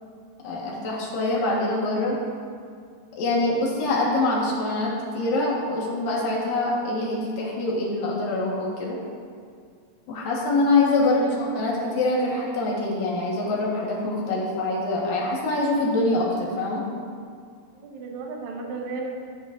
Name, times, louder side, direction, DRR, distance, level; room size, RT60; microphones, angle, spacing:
voice 1, 0.4-2.2 3.2-9.0 10.1-16.8, left 2 dB, 70° left, -4 dB, 3.0 m, -24 dB
voice 2, 11.0-11.4 17.7-19.1, right 3 dB, 65° right, 0 dB, 2.0 m, -35 dB
14.5 x 8.2 x 2.5 m, 2.2 s
omnidirectional pair, 4.3 m